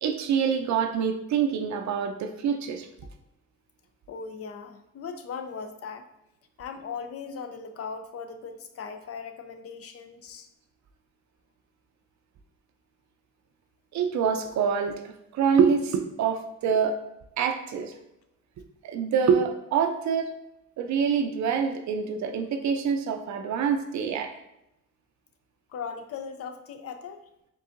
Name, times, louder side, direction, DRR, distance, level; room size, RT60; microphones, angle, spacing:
voice 1, 0.0-2.9 13.9-15.0 15.3-17.0 17.4-17.9 18.8-20.3 20.8-24.3, right 6 dB, 65° right, 6 dB, 0.6 m, -25 dB
voice 2, 4.1-6.1 6.6-10.5 25.7-27.2, left 6 dB, 50° left, 7 dB, 0.5 m, -38 dB
4.6 x 3.6 x 2.5 m, 0.85 s
cardioid pair, 90°, 30 cm